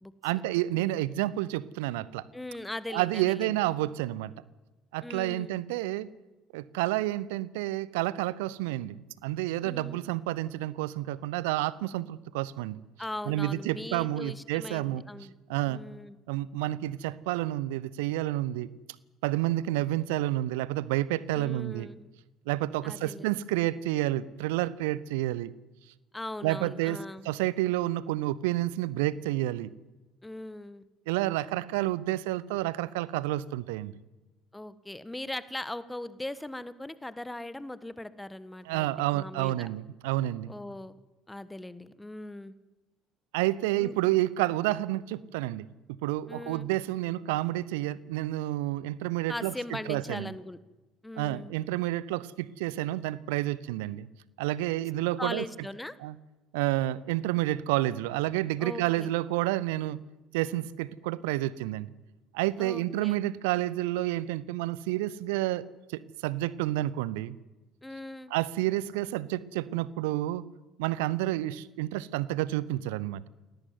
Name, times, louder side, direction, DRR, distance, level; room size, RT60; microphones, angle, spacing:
voice 1, 0.2-2.3 2.9-4.3 4.9-6.1 6.5-12.8 13.3-15.0 15.5-15.8 16.3-18.7 19.2-21.9 22.5-25.5 26.4-27.0 27.2-29.7 31.1-33.9 38.7-40.5 43.3-49.5 49.9-50.3 51.2-54.1 54.4-55.4 56.0-56.2 56.5-60.0 60.3-61.9 62.3-65.6 65.9-67.4 68.3-70.4 70.8-73.2, right 16 dB, 65° right, 21 dB, 0.8 m, -30 dB
voice 2, 0.7-1.1 2.3-3.6 5.0-5.5 9.6-10.0 13.0-15.3 15.6-16.2 21.3-22.1 22.8-23.4 26.1-27.3 30.2-30.9 34.5-39.7 40.5-41.0 41.3-42.5 43.8-44.0 46.3-46.7 49.3-50.6 51.0-51.5 55.2-56.0 58.6-59.1 62.6-63.2 67.8-68.3, left 1 dB, 10° left, 16 dB, 1.4 m, -40 dB
21.0 x 18.0 x 9.6 m, 1.1 s
figure-of-eight pair, 55°, 0 cm